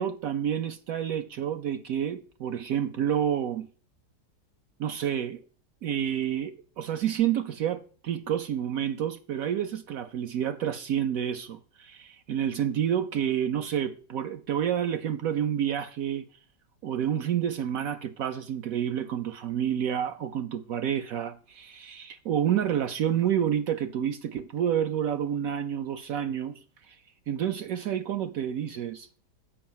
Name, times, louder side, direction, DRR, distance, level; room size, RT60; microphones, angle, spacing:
voice 1, 0.0-3.7 4.8-5.4 5.8-16.3 16.8-26.6 26.9-27.0 27.3-29.1, right 9 dB, 70° right, 0.9 m, -29 dB
7.0 x 5.5 x 7.2 m
omnidirectional pair, 1.9 m